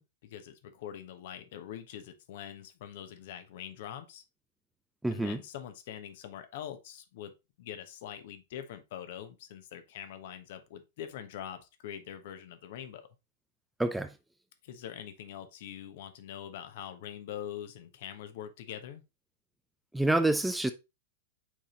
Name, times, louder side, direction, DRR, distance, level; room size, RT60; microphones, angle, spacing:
voice 1, 0.0-4.2 5.1-7.3 7.6-13.1 14.6-19.0, left 10 dB, 60° left, 1.2 m, -44 dB
voice 2, 5.0-5.4 13.8-14.1 19.9-20.7, right 2 dB, 5° right, 0.6 m, -27 dB
6.2 x 4.2 x 3.8 m
hypercardioid pair, 105°, 0 cm